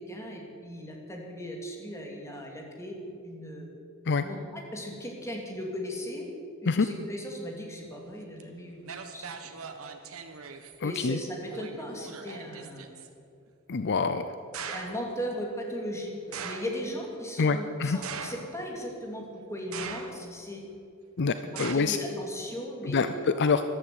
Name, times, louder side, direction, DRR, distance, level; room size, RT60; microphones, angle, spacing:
voice 1, 0.0-2.9 3.2-3.7 4.2-6.3 6.6-8.8 9.1-9.3 10.8-12.8 14.7-20.6 21.7-23.0, equal, 15° left, 0 dB, 2.8 m, -37 dB
sound 1, 8.4-8.5 8.9-10.8 11.5-13.1 14.5-15.1 16.3-16.9 18.0-18.8 19.7-20.4 21.6-21.8, right 6 dB, 85° right, 1.3 m, -40 dB
voice 2, 10.8-11.2 13.7-14.2 17.4-18.0 21.2-22.0 22.8-23.6, left 4 dB, 55° left, 10 dB, 0.6 m, -26 dB
14.5 x 12.0 x 8.1 m, 2.5 s
head